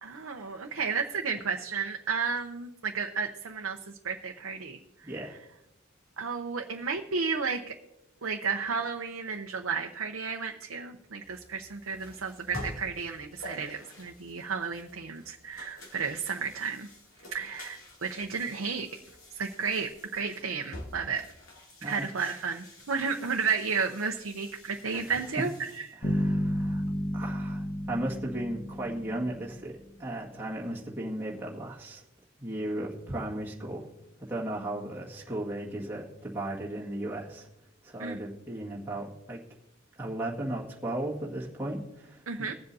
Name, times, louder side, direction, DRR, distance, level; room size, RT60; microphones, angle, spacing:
voice 1, 0.0-3.8 4.0-4.8 5.2-5.3 6.2-7.7 8.2-16.9 17.3-18.9 19.4-21.3 21.8-26.0 38.0-38.2 42.3-42.5, right 5 dB, 70° right, 2 dB, 0.8 m, -32 dB
voice 2, 5.0-5.3 21.8-22.1 24.9-25.2 26.0-26.8 27.1-32.0 32.4-33.9 34.3-37.5 37.8-39.4 40.0-42.2, right 1 dB, 10° right, -5 dB, 1.8 m, -36 dB
sound 1, 11.2-25.9, left 1 dB, 75° left, 2.7 m, -48 dB
sound 2, 26.0-29.8, equal, 30° left, 1.3 m, -31 dB
22.5 x 7.8 x 2.7 m, 0.91 s
head